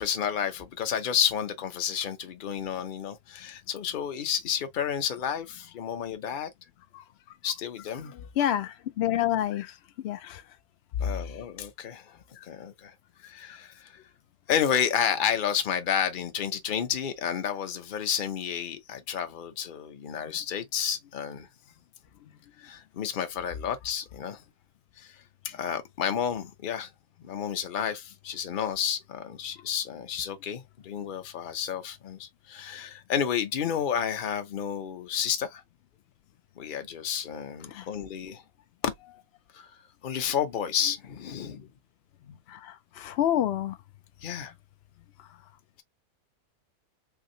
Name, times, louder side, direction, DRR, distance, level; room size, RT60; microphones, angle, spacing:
voice 1, 0.0-6.5 7.4-8.1 11.0-12.2 12.4-12.9 13.2-14.0 14.5-21.5 22.6-24.4 25.0-26.9 27.2-35.6 36.6-38.4 38.8-38.9 39.5-39.7 40.0-41.7 44.2-44.5, left 8 dB, 45° left, 0.7 m, -31 dB
voice 2, 8.1-9.7 10.0-10.4 11.2-11.4 13.4-13.6 37.7-37.9 42.5-43.8, left 11 dB, 80° left, 0.5 m, -29 dB
3.6 x 2.9 x 2.7 m
omnidirectional pair, 1.7 m